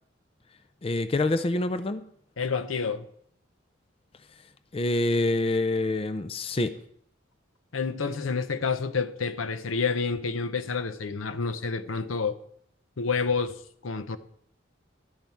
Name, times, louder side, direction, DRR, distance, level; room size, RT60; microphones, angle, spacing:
voice 1, 0.8-2.1 4.7-6.8, left 2 dB, 30° left, 0.4 m, -26 dB
voice 2, 2.4-3.1 7.7-12.4 13.0-14.2, left 5 dB, 90° left, 0.7 m, -29 dB
12.0 x 9.3 x 4.6 m
head